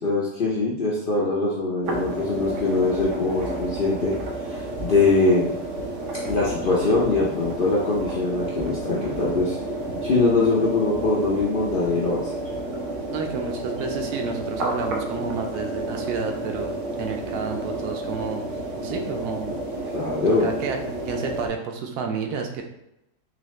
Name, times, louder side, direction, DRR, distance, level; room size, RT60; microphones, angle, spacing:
voice 1, 0.0-4.1 4.5-5.5 6.3-9.6 10.0-12.3 19.9-20.5, left 3 dB, 60° left, -5 dB, 0.5 m, -22 dB
sound 1, 1.8-21.5, right 1 dB, 60° right, 0.9 m, -31 dB
voice 2, 13.1-18.4 18.8-19.6 20.3-22.6, right 5 dB, 85° right, 3 dB, 1.1 m, -30 dB
3.9 x 2.8 x 3.1 m, 0.86 s
omnidirectional pair, 1.7 m